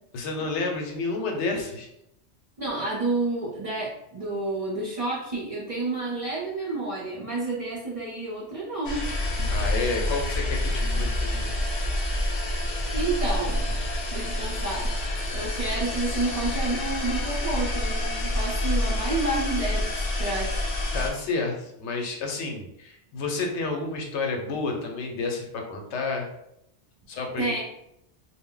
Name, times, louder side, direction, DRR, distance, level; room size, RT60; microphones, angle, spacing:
voice 1, 0.1-1.9 9.5-11.5 20.9-26.3 27.1-27.6, left 3 dB, 85° left, 1 dB, 0.9 m, -30 dB
voice 2, 2.6-9.0 12.9-13.8 14.1-14.9 15.3-20.6 27.4-27.6, right 2 dB, 45° right, -5 dB, 0.4 m, -30 dB
sound 1, 8.8-21.1, left 1 dB, 65° left, 0.7 m, -27 dB
2.1 x 2.0 x 3.6 m, 0.78 s
omnidirectional pair, 1.1 m